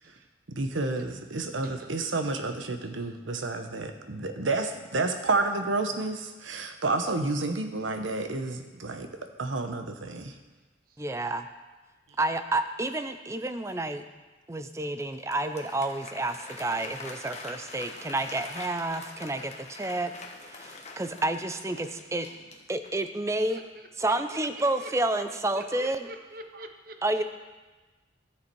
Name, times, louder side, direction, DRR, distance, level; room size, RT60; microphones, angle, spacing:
voice 1, 0.5-9.1 9.4-10.3, right 3 dB, 85° right, 6 dB, 0.9 m, -30 dB
voice 2, 1.6-1.9 3.2-3.3 4.0-4.6 16.8-16.9 23.5-24.9 25.5-27.2, right 1 dB, 50° right, 6 dB, 0.8 m, -46 dB
voice 3, 11.0-11.5 12.2-14.0 14.5-20.1 20.5-22.3 22.7-23.6 24.0-26.1 27.0-27.2, right 2 dB, 15° right, 9 dB, 0.4 m, -30 dB
Applause, 15.0-23.1, left 3 dB, 35° left, 1.1 m, -45 dB
13.0 x 7.1 x 4.6 m, 1.2 s
head